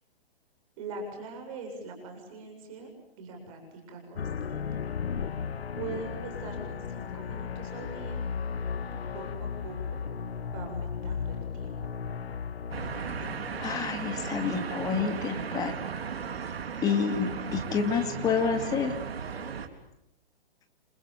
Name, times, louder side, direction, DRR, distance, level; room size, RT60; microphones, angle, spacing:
voice 1, 0.8-2.9 3.2-4.6 5.7-8.2 8.9-10.0 10.5-11.8, right 3 dB, 35° right, 3 dB, 7.3 m, -42 dB
sound 1, 4.2-15.4, left 6 dB, 90° left, 1.5 m, -36 dB
sound 2, 12.7-19.7, right 6 dB, 85° right, 4.0 m, -36 dB
voice 2, 13.6-15.7 16.8-18.9, left 6 dB, 10° left, 6 dB, 2.4 m, -28 dB
29.5 x 27.5 x 7.3 m, 0.84 s
hypercardioid pair, 160°, 30 cm